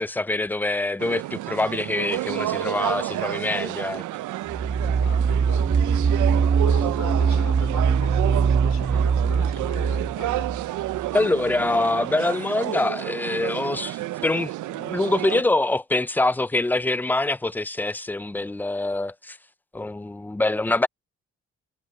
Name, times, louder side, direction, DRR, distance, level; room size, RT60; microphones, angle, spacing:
voice 1, 0.0-4.0 11.1-19.4 19.7-20.9, left 2 dB, 5° left, 0.4 m, -25 dB
sound 1, 1.0-15.4, right 15 dB, 75° right, 0.6 m, -30 dB
sound 2, 4.5-11.1, right 6 dB, 25° right, 0.8 m, -22 dB
voice 2, 4.8-5.9 6.6-10.5, left 9 dB, 60° left, 4.0 m, -41 dB
cardioid pair, 90°, 30 cm